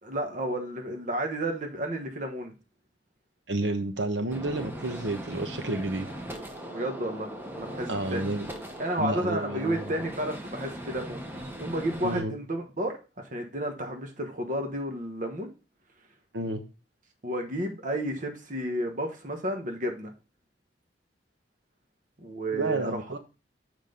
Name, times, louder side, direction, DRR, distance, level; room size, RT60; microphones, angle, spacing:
voice 1, 0.0-2.5 6.7-7.3 7.5-8.3 8.8-11.2 11.6-13.0 13.2-15.5 17.2-20.1 22.2-23.0, right 1 dB, 45° right, 1.2 m, -31 dB
voice 2, 3.5-6.1 7.9-8.5 9.0-9.9 12.0-12.3 16.3-16.6 22.5-23.2, right 2 dB, 75° right, 1.1 m, -30 dB
Gunshot gunfire, 4.3-12.2, right 1 dB, 10° right, 1.1 m, -39 dB
7.4 x 5.1 x 3.8 m
head